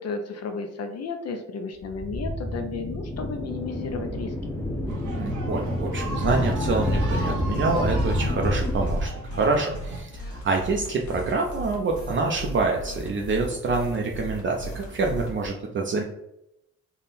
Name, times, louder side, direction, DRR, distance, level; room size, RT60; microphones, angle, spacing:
voice 1, 0.0-4.6, left 4 dB, 60° left, 6 dB, 0.5 m, -33 dB
sound 1, 1.8-9.1, left 1 dB, 10° left, 0.7 m, -28 dB
sound 2, 4.9-10.0, right 2 dB, 85° right, 0.8 m, -36 dB
voice 2, 5.2-16.0, right 3 dB, 40° right, 0 dB, 0.5 m, -26 dB
sound 3, 6.1-15.5, equal, 80° left, 1.1 m, -37 dB
3.6 x 2.1 x 4.0 m, 0.83 s
cardioid pair, 125°, 29 cm